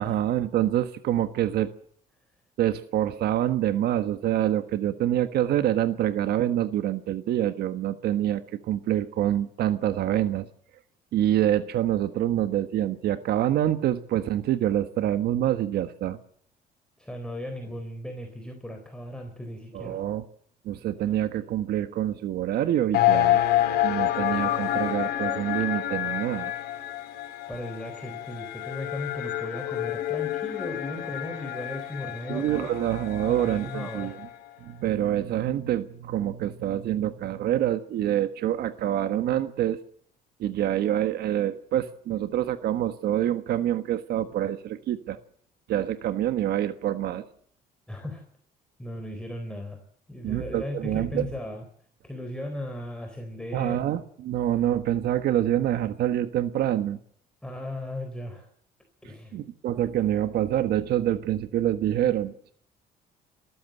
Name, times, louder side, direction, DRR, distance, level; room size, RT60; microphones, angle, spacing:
voice 1, 0.0-1.7 2.6-10.5 11.1-16.2 19.7-20.2 20.6-23.4 23.8-26.5 32.3-34.2 34.6-39.8 40.4-45.2 45.7-47.2 50.2-51.3 53.5-57.0 59.3-62.5, right 12 dB, 70° right, 11 dB, 1.4 m, -26 dB
voice 2, 17.0-20.0 27.5-32.8 33.3-34.1 34.5-34.7 47.9-48.2 48.8-49.8 50.1-51.6 52.0-53.8 57.4-58.5 59.0-59.4, left 1 dB, 5° left, 4 dB, 3.9 m, -37 dB
sound 1, 22.9-34.3, left 13 dB, 75° left, 3.6 m, -28 dB
27.0 x 14.0 x 7.9 m, 0.64 s
cardioid pair, 110°, 17 cm